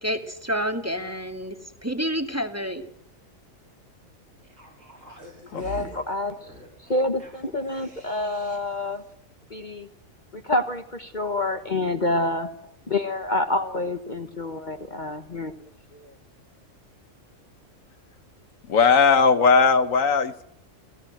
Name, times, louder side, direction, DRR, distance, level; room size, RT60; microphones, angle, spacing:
voice 1, 0.0-2.8, equal, 10° right, 7 dB, 2.0 m, -29 dB
sound 1, 4.4-8.8 9.1-9.2, right 1 dB, 75° right, 5.9 m, -45 dB
voice 2, 5.5-6.3 6.9-9.0 9.5-9.9 10.3-12.5 12.9-15.5 15.9-16.1, left 2 dB, 35° left, 8 dB, 1.4 m, -27 dB
voice 3, 18.7-20.4, left 5 dB, 70° left, 12 dB, 1.5 m, -18 dB
28.5 x 16.5 x 7.8 m, 0.74 s
omnidirectional pair, 1.4 m